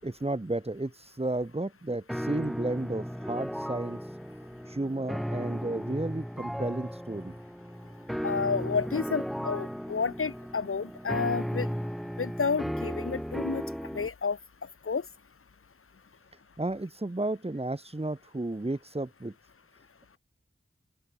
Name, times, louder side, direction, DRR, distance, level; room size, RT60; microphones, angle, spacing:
voice 1, 0.0-4.2 4.7-7.3 16.6-19.3, right 2 dB, 30° right, 7.6 m, -33 dB
sound 1, 2.1-14.1, equal, ahead, 5.3 m, -35 dB
voice 2, 8.2-11.7 12.2-13.6 13.9-14.4 14.9-15.0, left 5 dB, 90° left, 2.1 m, -30 dB
open air
wide cardioid pair, 85°, 21 cm